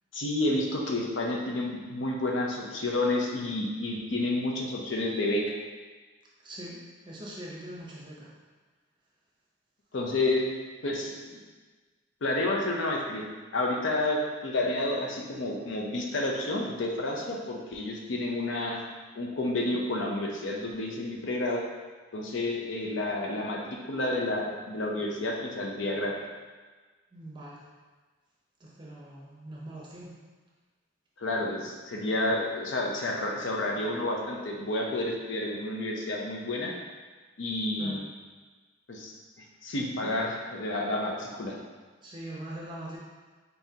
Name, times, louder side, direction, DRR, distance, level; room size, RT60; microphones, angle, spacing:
voice 1, 0.1-5.6 9.9-10.4 10.8-11.4 12.2-13.2 13.5-18.8 19.1-21.6 22.1-26.1 31.2-36.7 37.4-38.0 38.9-39.1 39.6-41.6, left 2 dB, 65° left, 0 dB, 0.6 m, -30 dB
voice 2, 6.4-8.3 27.1-27.6 28.6-30.1 37.8-38.0 40.0-40.2 42.0-43.0, right 1 dB, 25° right, -4 dB, 0.7 m, -42 dB
4.1 x 3.6 x 2.8 m, 1.4 s
head